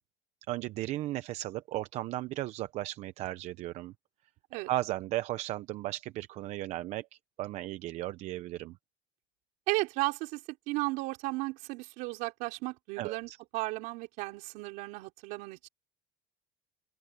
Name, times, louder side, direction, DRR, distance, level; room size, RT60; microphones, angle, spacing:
voice 1, 0.5-3.9 4.7-7.1 7.4-8.7 13.0-13.4, right 15 dB, 50° right, 0.7 m, -35 dB
voice 2, 9.7-15.7, right 23 dB, 75° right, 4.5 m, -34 dB
open air
cardioid pair, 145°, 14 cm